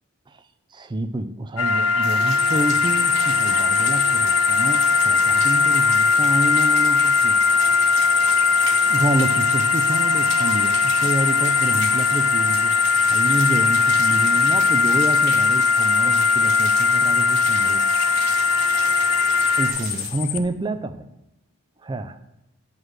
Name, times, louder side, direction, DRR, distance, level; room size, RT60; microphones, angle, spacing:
voice 1, 0.7-7.4 8.8-12.7 13.1-17.9 19.6-21.1 21.8-22.2, right 1 dB, 20° right, 10 dB, 0.4 m, -28 dB
sound 1, 1.6-19.7, left 4 dB, 70° left, 1.3 m, -19 dB
sound 2, 2.0-20.1, right 4 dB, 55° right, 1.1 m, -37 dB
sound 3, 2.4-20.4, left 13 dB, 90° left, 0.5 m, -29 dB
9.5 x 3.2 x 6.2 m, 0.92 s
head